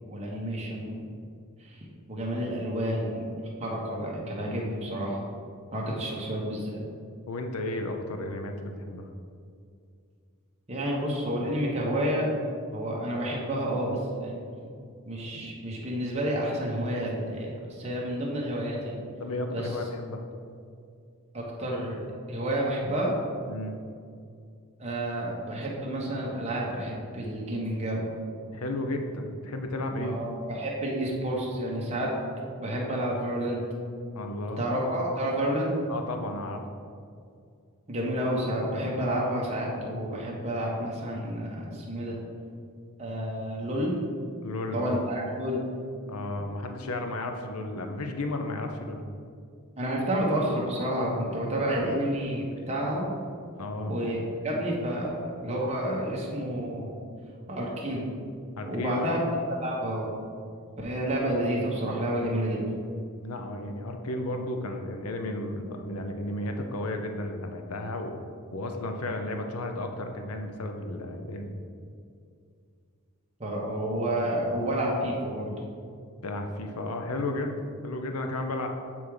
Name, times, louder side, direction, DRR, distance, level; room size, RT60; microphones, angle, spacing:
voice 1, 0.1-0.9 1.6-1.8 2.1-3.3 3.6-5.2 5.7-6.8 10.7-12.3 12.7-14.4 15.0-19.0 19.5-19.7 21.3-22.0 22.3-23.1 24.8-28.0 30.0-32.1 32.6-33.6 34.6-35.7 37.9-42.2 43.0-44.0 44.7-45.6 49.8-53.1 53.9-55.2 55.4-57.0 57.5-58.1 58.6-60.1 60.8-62.6 73.4-75.5, right 1 dB, 30° right, -3 dB, 1.1 m, -30 dB
voice 2, 7.3-9.1 19.2-20.2 23.5-23.8 28.4-30.1 34.1-34.7 35.9-36.6 44.4-44.8 46.1-49.1 53.6-54.0 58.6-59.1 63.2-68.1 68.5-71.6 76.2-78.7, left 2 dB, 85° left, 5 dB, 0.7 m, -33 dB
8.3 x 3.6 x 4.8 m, 2.3 s
head